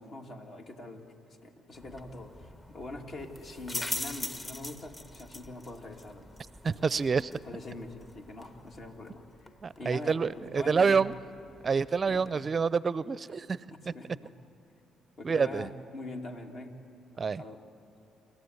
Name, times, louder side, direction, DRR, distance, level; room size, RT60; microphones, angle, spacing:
voice 1, 0.0-6.3 6.6-11.1 12.1-12.4 13.7-14.3 15.2-16.7 17.2-17.6, left 2 dB, 50° left, 2 dB, 2.7 m, -44 dB
sound 1, 1.7-12.3, left 1 dB, 25° left, 1.3 m, -43 dB
voice 2, 6.6-7.3 9.6-11.1 11.6-13.6 15.2-15.7 17.2-17.4, right 5 dB, 40° right, 19 dB, 0.5 m, -27 dB
28.0 x 14.0 x 9.7 m, 2.9 s
hypercardioid pair, 55°, 0 cm